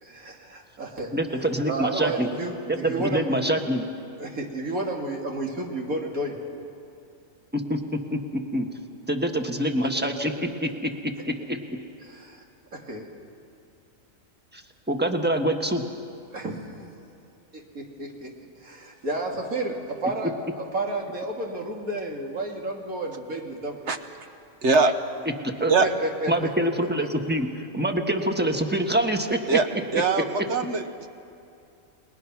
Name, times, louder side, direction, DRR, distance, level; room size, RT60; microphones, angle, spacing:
voice 1, 0.0-1.1 1.7-3.4 4.2-6.4 12.0-12.4 12.7-13.1 16.3-16.6 17.5-23.8 25.8-26.3 29.9-30.5, right 2 dB, 80° right, 0 dB, 2.8 m, -31 dB
voice 2, 1.1-2.3 2.7-3.8 7.5-8.7 9.1-11.8 14.5-14.6 14.9-15.8 25.4-25.7 26.3-29.6 29.9-30.0, right 1 dB, 10° right, 4 dB, 1.3 m, -26 dB
voice 3, 24.6-24.9 25.7-25.9 29.5-29.7 29.9-31.1, right 4 dB, 55° right, 8 dB, 1.3 m, -22 dB
30.0 x 20.5 x 6.1 m, 2.6 s
omnidirectional pair, 1.5 m